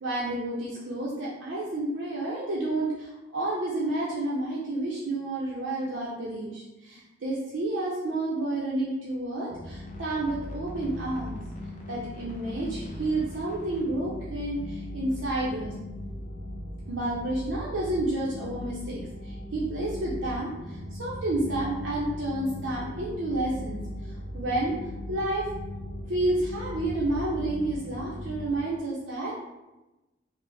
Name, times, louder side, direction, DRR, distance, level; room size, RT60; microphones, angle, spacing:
voice 1, 0.0-11.4 11.9-15.7 16.9-24.8 25.1-25.5 26.1-29.3, right 2 dB, 90° right, -7 dB, 0.6 m, -30 dB
sound 1, 9.5-28.5, left 1 dB, 40° left, 0.6 m, -38 dB
3.3 x 2.0 x 3.4 m, 1.0 s
head